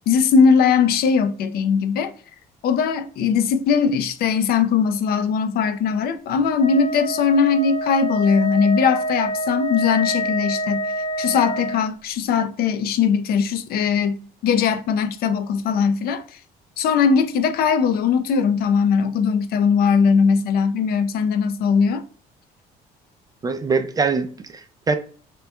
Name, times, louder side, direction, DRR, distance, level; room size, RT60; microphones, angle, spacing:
voice 1, 0.1-2.1 2.6-10.9 11.2-16.2 16.8-22.0, left 6 dB, 65° left, 0.5 m, -20 dB
Wind instrument woodwind instrument, 6.6-11.9, equal, 40° left, 0.8 m, -27 dB
voice 2, 23.4-24.9, right 4 dB, 20° right, 0.3 m, -23 dB
2.9 x 2.2 x 3.3 m
cardioid pair, 110°, 17 cm